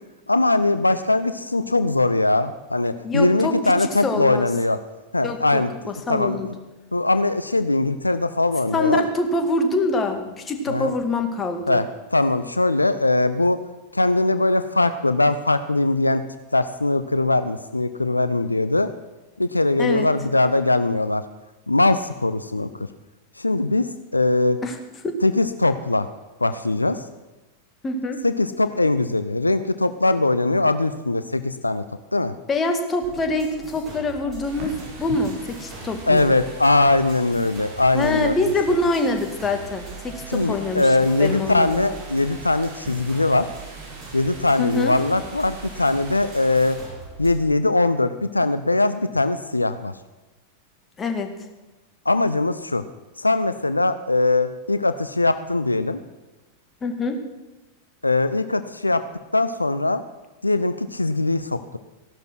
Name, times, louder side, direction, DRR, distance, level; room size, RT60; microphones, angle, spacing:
voice 1, 0.3-4.8 5.1-5.7 6.1-6.4 6.9-9.0 10.7-10.9 11.7-11.8 12.1-13.6 13.9-16.2 16.5-18.9 19.4-21.2 21.7-22.9 23.4-24.6 25.2-26.1 26.4-27.0 28.2-31.8 32.1-32.3 36.1-38.4 40.3-43.5 44.1-46.8 47.2-49.9 52.1-52.8 53.2-56.0 58.0-59.0 59.3-60.0 60.4-61.8, left 2 dB, 85° left, 12 dB, 0.6 m, -21 dB
voice 2, 3.0-4.5 5.2-6.5 8.7-11.8 19.8-20.1 24.6-24.8 27.8-28.2 32.5-36.3 37.9-40.9 41.2-41.8 44.6-45.0 51.0-51.3 56.8-57.2, left 2 dB, 20° left, 6 dB, 2.0 m, -25 dB
sound 1, 33.0-47.4, right 4 dB, 25° right, 6.5 m, -41 dB
sound 2, 34.4-46.8, right 1 dB, 50° right, 5.4 m, -42 dB
15.5 x 12.0 x 6.2 m, 1.1 s
figure-of-eight pair, 90°, 0 cm